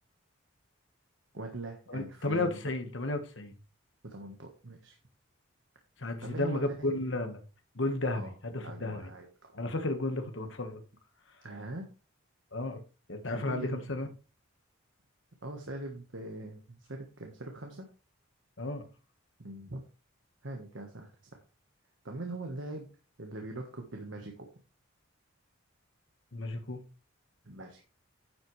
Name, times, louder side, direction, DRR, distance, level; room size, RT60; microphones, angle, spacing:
voice 1, 1.3-2.6 4.0-5.0 6.2-6.9 8.1-8.3 8.6-9.6 11.4-11.9 13.3-14.0 15.4-17.8 19.4-19.8 20.4-21.4 22.0-22.9 23.2-24.5 27.4-27.8, right 2 dB, 65° right, 1.4 m, -42 dB
voice 2, 1.9-3.5 6.0-7.4 7.7-9.1 9.5-10.8 12.5-12.8 13.1-14.1 18.6-18.8 26.3-26.8, left 2 dB, 65° left, 1.5 m, -33 dB
10.5 x 7.5 x 3.3 m
head